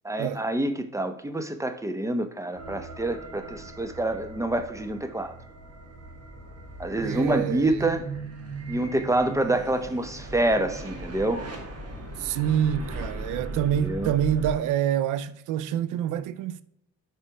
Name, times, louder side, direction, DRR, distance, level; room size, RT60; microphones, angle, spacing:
voice 1, 0.0-5.4 6.8-8.0 8.7-11.4 13.8-14.1, right 1 dB, 10° right, 1.0 m, -27 dB
sound 1, 2.5-14.5, right 3 dB, 55° right, 2.2 m, -38 dB
voice 2, 7.0-7.8 12.2-16.6, right 10 dB, 85° right, 0.5 m, -27 dB
6.7 x 4.5 x 4.6 m
cardioid pair, 90°, 30 cm